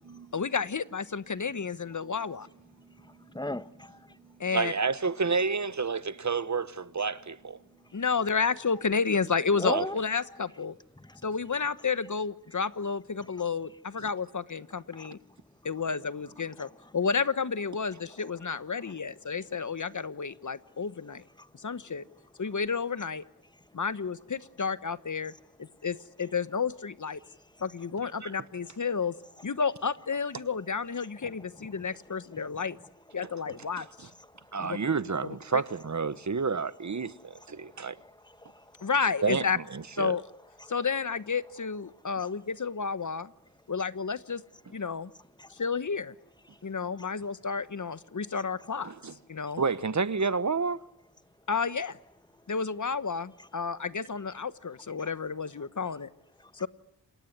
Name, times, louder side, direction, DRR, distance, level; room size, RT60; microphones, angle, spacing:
voice 1, 0.3-2.5 4.4-4.7 7.9-10.7 11.2-15.2 15.6-21.2 21.6-22.0 22.4-23.2 23.7-25.3 25.6-27.2 27.6-29.1 29.4-32.8 33.1-34.1 34.6-34.8 35.5-35.6 38.8-39.6 40.0-40.2 40.7-43.3 43.7-44.4 44.7-45.1 45.5-46.1 46.6-48.9 49.3-49.6 51.5-52.0 52.5-56.1 56.5-56.7, left 5 dB, 55° left, 1.2 m, -31 dB
voice 2, 3.3-4.0 9.5-10.0 11.0-11.1 14.9-15.1 16.6-16.7 21.4-21.5 31.2-31.3 37.9-38.5 45.4-45.5 48.7-48.8 55.0-55.1, left 1 dB, 10° left, 1.3 m, -37 dB
voice 3, 4.5-7.6 9.6-9.9 28.2-28.3 33.8-33.9 34.5-38.0 39.2-40.2 48.8-49.1 49.6-50.8, right 4 dB, 50° right, 1.1 m, -30 dB
28.0 x 20.0 x 9.6 m
cardioid pair, 45°, 36 cm